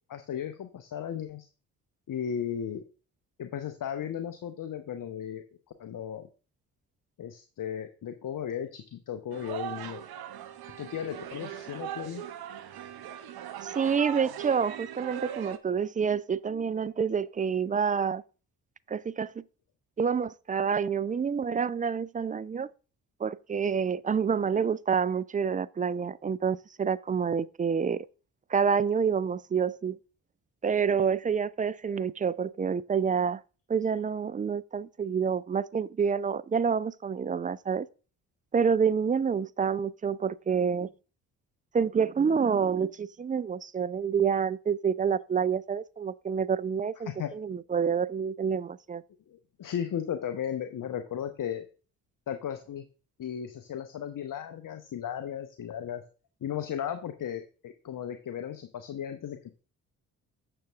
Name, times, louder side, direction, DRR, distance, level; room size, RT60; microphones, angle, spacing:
voice 1, 0.1-1.5 2.1-2.8 3.4-5.4 5.8-6.3 7.2-10.0 10.8-12.2 47.1-47.3 49.3-51.7 52.3-52.9 53.2-56.0 56.4-59.4, left 9 dB, 45° left, 1.1 m, -35 dB
sound 1, 9.3-15.6, right 10 dB, 55° right, 1.0 m, -40 dB
voice 2, 13.6-18.2 18.9-19.4 20.0-22.7 23.2-28.1 28.5-30.0 30.6-33.4 33.7-37.9 38.5-40.9 41.7-49.0, right 6 dB, 20° right, 0.4 m, -28 dB
8.9 x 6.7 x 3.5 m
hypercardioid pair, 40°, 44 cm